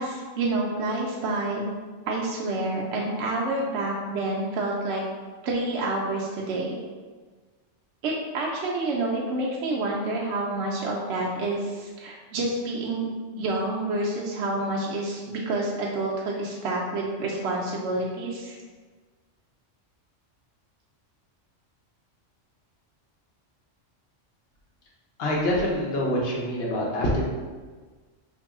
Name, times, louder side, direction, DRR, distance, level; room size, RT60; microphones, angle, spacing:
voice 1, 0.0-1.6 2.1-5.0 5.4-6.8 8.0-13.1 13.4-18.6, right 2 dB, 70° right, -3 dB, 0.8 m, -28 dB
voice 2, 25.2-27.2, left 1 dB, 55° left, -3 dB, 0.9 m, -25 dB
3.0 x 2.6 x 3.6 m, 1.4 s
omnidirectional pair, 1.3 m